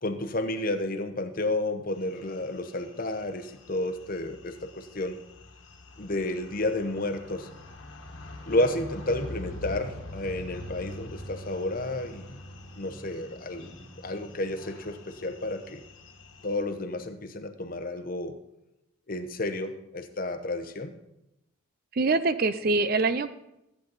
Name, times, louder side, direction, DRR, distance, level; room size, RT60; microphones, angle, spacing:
voice 1, 0.0-5.2 6.0-7.5 8.5-12.4 12.8-13.6 14.0-15.8 16.4-18.3 19.1-20.9, left 2 dB, 40° left, 8 dB, 0.9 m, -31 dB
sound 1, 2.0-16.6, left 1 dB, 60° left, 1.4 m, -44 dB
voice 2, 21.9-23.3, right 3 dB, 45° right, 12 dB, 0.5 m, -24 dB
14.0 x 8.1 x 4.0 m, 0.88 s
head